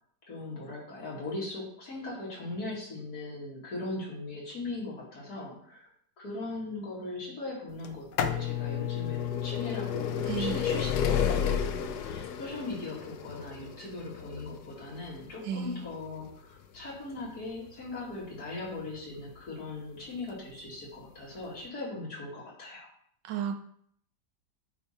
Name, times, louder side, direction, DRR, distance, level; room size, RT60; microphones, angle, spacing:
voice 1, 0.3-5.9 6.2-22.9, left 2 dB, 55° left, -4 dB, 2.7 m, -39 dB
sound 1, 7.8-19.5 20.3-20.4 21.4-21.5 21.7-21.8, left 8 dB, 70° left, 1.1 m, -32 dB
voice 2, 10.3-10.6 15.4-15.9 23.2-23.5, right 7 dB, 75° right, 8 dB, 1.2 m, -33 dB
10.0 x 3.4 x 4.3 m, 0.65 s
omnidirectional pair, 2.0 m